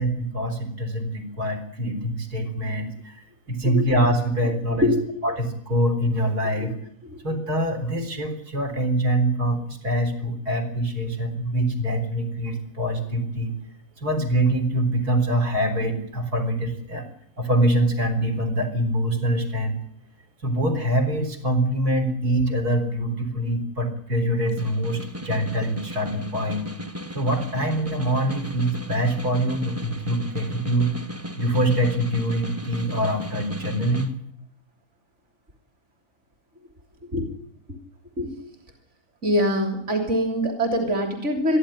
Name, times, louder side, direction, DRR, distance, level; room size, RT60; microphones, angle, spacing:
voice 1, 0.0-3.2 3.5-4.9 5.2-6.7 7.2-13.5 14.0-17.1 17.4-19.8 20.4-26.7 27.1-30.9 31.4-34.1, right 1 dB, 80° right, 4 dB, 4.4 m, -24 dB
Snare drum, 24.4-34.1, equal, 10° right, 0.9 m, -36 dB
voice 2, 39.2-41.6, equal, 50° right, 4 dB, 3.7 m, -23 dB
22.0 x 13.5 x 10.0 m, 0.68 s
omnidirectional pair, 1.6 m